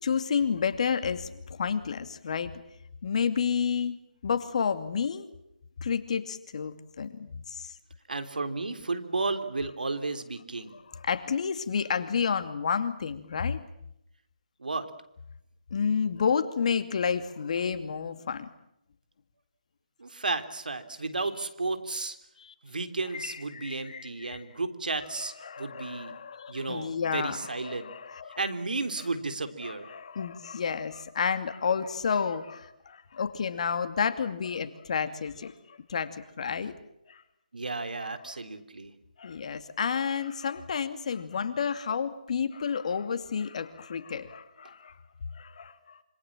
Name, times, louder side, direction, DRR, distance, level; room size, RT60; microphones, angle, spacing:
voice 1, 0.0-2.5 3.0-5.3 5.8-7.7 10.7-13.6 15.7-18.5 22.4-22.5 23.1-24.4 25.2-28.4 29.6-36.7 37.1-37.2 38.0-38.3 39.2-45.0 45.3-46.0, left 6 dB, 50° left, 9 dB, 2.6 m, -31 dB
voice 2, 8.1-10.7 14.6-14.9 20.0-22.2 22.6-26.1 26.5-27.9 28.4-29.9 36.6-36.7 37.5-38.9, right 3 dB, 75° right, 8 dB, 3.5 m, -33 dB
27.0 x 26.5 x 7.5 m, 0.81 s
figure-of-eight pair, 150°, 5 cm